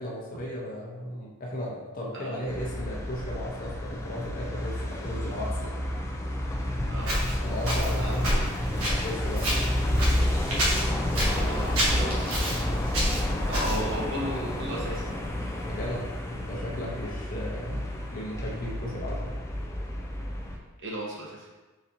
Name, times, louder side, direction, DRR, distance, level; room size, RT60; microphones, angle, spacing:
voice 1, 0.0-5.9 7.4-8.5 8.7-9.5 15.6-17.8 18.1-19.4, left 1 dB, 40° left, -3 dB, 0.8 m, -36 dB
sound 1, 2.5-20.6, left 1 dB, 15° left, 0.3 m, -30 dB
Walk footsteps, 7.0-14.0, equal, 80° right, 1.2 m, -29 dB
voice 2, 11.2-12.2 13.5-15.1 20.8-21.5, equal, 55° right, -3 dB, 0.9 m, -34 dB
4.2 x 3.9 x 2.7 m, 1.2 s
head